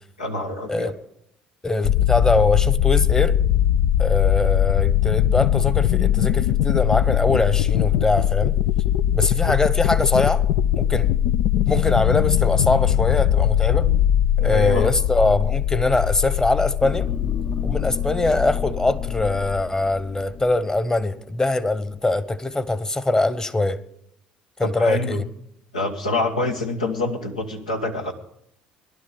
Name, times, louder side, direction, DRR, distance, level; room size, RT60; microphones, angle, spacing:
voice 1, 0.2-0.9 13.8-14.0 14.4-14.9 24.6-25.2 25.7-28.1, left 2 dB, 90° left, 1.3 m, -26 dB
voice 2, 1.6-3.4 4.0-8.5 9.1-10.4 10.8-11.1 11.7-13.9 14.4-17.1 17.6-23.8 24.6-25.2, left 2 dB, 15° left, 1.0 m, -22 dB
sound 1, 1.8-19.6, left 11 dB, 65° left, 0.4 m, -21 dB
sound 2, 16.8-21.3 21.8-21.9, left 6 dB, 50° left, 1.0 m, -32 dB
16.5 x 11.5 x 5.2 m
hypercardioid pair, 60°, 4 cm